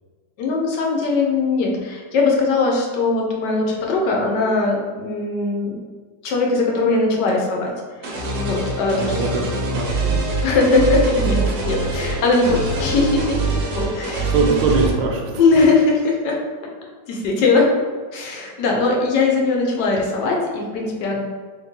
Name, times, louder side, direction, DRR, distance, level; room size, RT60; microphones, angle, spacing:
voice 1, 0.4-5.8 6.2-7.7 8.0-9.4 10.4-13.4 13.7-14.5 15.4-16.4 17.1-17.7 18.1-21.2, left 3 dB, 80° left, -1 dB, 1.3 m, -20 dB
sound 1, 8.0-14.9, right 3 dB, 60° right, 0.9 m, -24 dB
voice 2, 8.9-10.2 14.2-15.4, right 3 dB, 80° right, 1 dB, 1.2 m, -22 dB
3.2 x 3.1 x 3.5 m, 1.5 s
omnidirectional pair, 1.9 m